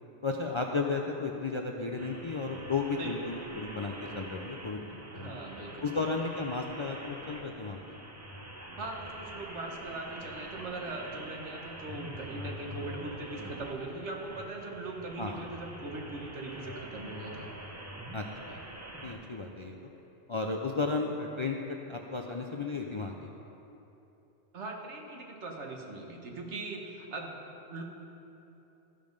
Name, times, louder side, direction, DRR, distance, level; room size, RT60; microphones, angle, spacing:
voice 1, 0.2-4.8 5.1-5.3 5.8-7.8 15.2-15.4 18.1-18.6 19.0-19.8 20.3-23.1, left 4 dB, 45° left, 1 dB, 0.4 m, -34 dB
sound 1, 2.0-19.1, right 1 dB, 15° right, 0.6 m, -45 dB
voice 2, 5.1-6.0 8.8-17.5 24.5-27.4 27.7-27.8, right 2 dB, 80° right, 1 dB, 1.5 m, -40 dB
14.5 x 5.2 x 5.2 m, 3.0 s
omnidirectional pair, 1.2 m